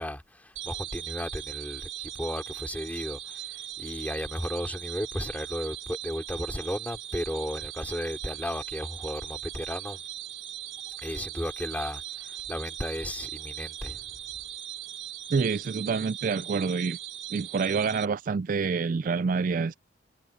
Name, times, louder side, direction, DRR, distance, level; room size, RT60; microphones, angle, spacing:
voice 1, 0.0-10.0 10.9-14.1, equal, 10° left, 3.0 m, -34 dB
sound 1, 0.6-18.1, right 13 dB, 75° right, 1.2 m, -39 dB
voice 2, 15.3-17.0 17.3-19.7, right 5 dB, 45° right, 0.3 m, -27 dB
head